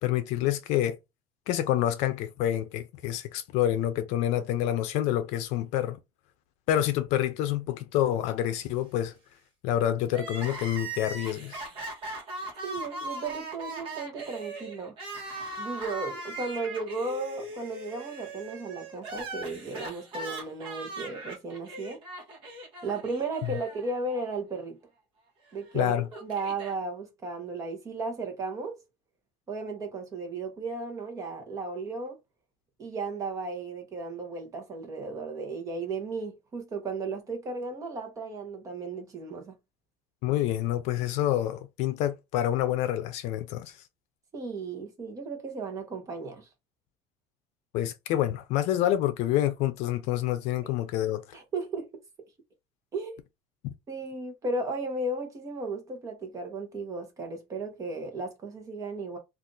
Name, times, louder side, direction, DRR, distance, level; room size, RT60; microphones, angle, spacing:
voice 1, 0.0-1.0 1.5-6.0 6.7-9.1 9.6-11.6 23.4-23.5 25.7-26.1 40.2-43.8 47.7-51.4, left 12 dB, 65° left, 0.5 m, -27 dB
Crying sobbing, 10.1-24.2 24.5-24.6 25.6-26.7, right 2 dB, 45° right, 1.2 m, -39 dB
voice 2, 12.6-15.0 15.6-22.0 22.8-24.8 25.5-28.8 29.5-32.2 32.8-39.5 44.3-46.5 50.6-50.7 51.3-52.0 52.9-53.2 53.9-59.2, right 3 dB, 25° right, 1.0 m, -35 dB
2.6 x 2.5 x 3.8 m
cardioid pair, 165°, 13 cm